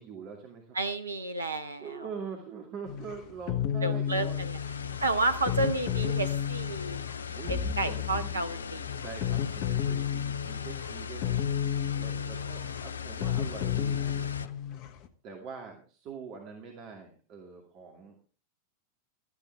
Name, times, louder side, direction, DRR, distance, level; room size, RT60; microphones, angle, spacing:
voice 1, 0.0-0.8 1.8-4.5 7.3-8.5 8.9-11.4 12.0-14.5 15.2-18.2, right 6 dB, 40° right, 2 dB, 2.4 m, -44 dB
voice 2, 0.7-1.9 3.8-4.6 5.0-7.0 7.5-8.9, right 2 dB, 80° right, 9 dB, 0.9 m, -31 dB
sound 1, 2.9-15.1, left 9 dB, 45° left, 1.3 m, -32 dB
sound 2, 4.0-14.5, left 7 dB, 70° left, 0.6 m, -39 dB
17.0 x 13.0 x 3.4 m, 0.38 s
figure-of-eight pair, 90°, 0 cm